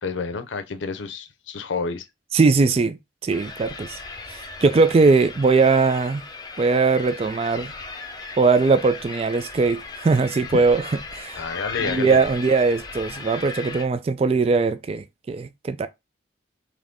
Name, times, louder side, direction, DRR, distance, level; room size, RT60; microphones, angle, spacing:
voice 1, 0.0-2.1 11.3-12.2, left 4 dB, 80° left, 0.6 m, -29 dB
voice 2, 2.3-3.0 3.2-4.0 4.3-6.2 6.6-7.7 8.4-10.8 11.1-11.4 11.8-15.9, right 4 dB, 30° right, 0.3 m, -20 dB
sound 1, 3.3-13.8, left 4 dB, 20° left, 0.6 m, -37 dB
3.8 x 3.1 x 3.5 m
head